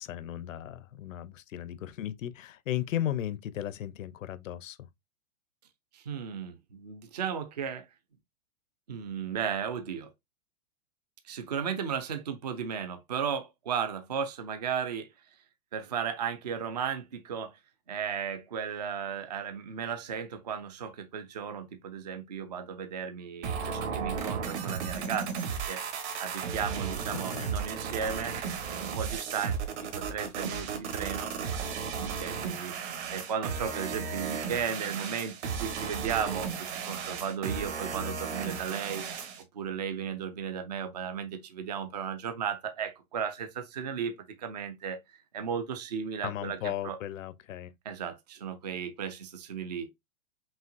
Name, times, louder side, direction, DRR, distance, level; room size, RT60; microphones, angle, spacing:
voice 1, 0.0-4.9 27.1-27.5 46.2-47.7, left 12 dB, 60° left, 0.6 m, -36 dB
voice 2, 5.9-7.9 8.9-10.1 11.2-15.1 15.7-17.6 17.9-25.8 26.2-28.3 28.8-32.8 33.1-39.0 39.5-45.0 45.3-47.0 47.9-49.9, right 7 dB, 30° right, 0.4 m, -35 dB
sound 1, 23.4-39.4, right 6 dB, 50° right, 1.3 m, -35 dB
5.6 x 2.8 x 2.5 m
hypercardioid pair, 165°, 43 cm